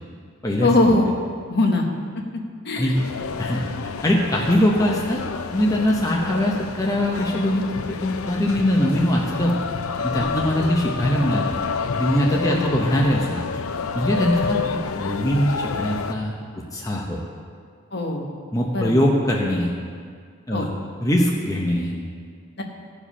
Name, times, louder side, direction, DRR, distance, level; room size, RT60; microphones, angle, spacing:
voice 1, 0.6-1.1 1.5-1.9 2.6-3.0 10.2-10.3 12.4-12.7 14.2-14.6 17.9-18.3 18.7-18.9 20.5-20.7 22.6-22.7, left 2 dB, 50° left, 2 dB, 1.0 m, -22 dB
sound 1, 2.9-16.1, left 5 dB, 80° left, 0.5 m, -29 dB
voice 2, 4.0-5.2 5.5-9.6 10.0-11.5 11.9-13.4 13.9-16.3 16.7-17.2 18.5-19.7 20.5-20.7 21.0-21.9, equal, 15° left, -2 dB, 0.7 m, -22 dB
15.0 x 5.0 x 5.5 m, 2.1 s
head